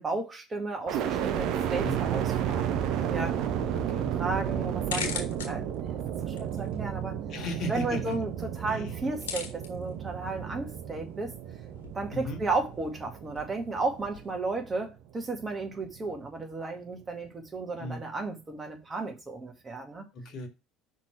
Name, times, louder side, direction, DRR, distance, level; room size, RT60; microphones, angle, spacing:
voice 1, 0.0-3.3 4.1-7.2 7.7-11.4 11.9-20.0, right 3 dB, 25° right, 2.0 m, -34 dB
sound 1, 0.9-14.9 15.4-16.1, right 9 dB, 60° right, 0.7 m, -32 dB
sound 2, 3.1-14.3, left 6 dB, 80° left, 1.8 m, -44 dB
voice 2, 3.6-4.1 7.3-8.1 8.7-9.0 12.1-12.4 17.8-18.0 20.1-20.5, left 1 dB, 50° left, 1.8 m, -36 dB
5.7 x 3.7 x 5.9 m
hypercardioid pair, 65°, 0 cm